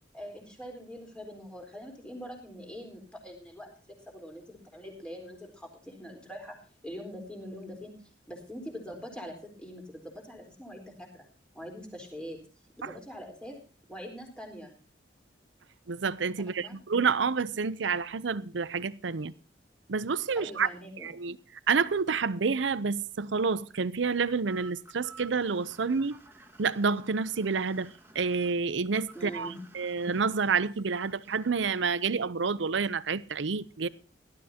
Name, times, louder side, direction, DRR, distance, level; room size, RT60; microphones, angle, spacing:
voice 1, 0.1-6.6 6.8-7.9 8.3-11.2 11.5-12.4 12.8-13.6 13.9-14.7 16.5-16.8 20.4-21.1 29.1-29.6 33.8-33.9, equal, 5° left, 4.0 m, -43 dB
voice 2, 15.9-19.3 19.9-20.7 21.0-21.4 21.7-26.2 26.6-27.9 28.1-33.9, right 5 dB, 75° right, 0.7 m, -29 dB
sound 1, 24.5-31.9, right 3 dB, 10° right, 1.7 m, -53 dB
18.0 x 12.5 x 2.8 m
head